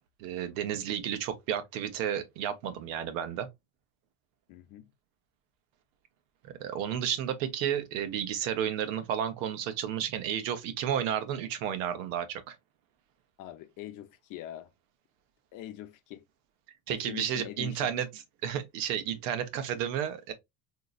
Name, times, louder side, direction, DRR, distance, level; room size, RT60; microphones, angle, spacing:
voice 1, 0.2-3.5 6.4-12.5 16.9-18.1 18.4-20.3, right 9 dB, 85° right, 0.9 m, -32 dB
voice 2, 4.5-4.9 13.4-14.7 15.5-16.2 16.9-17.9, left 13 dB, 55° left, 0.7 m, -43 dB
3.8 x 2.8 x 2.4 m
supercardioid pair, 110°, 38 cm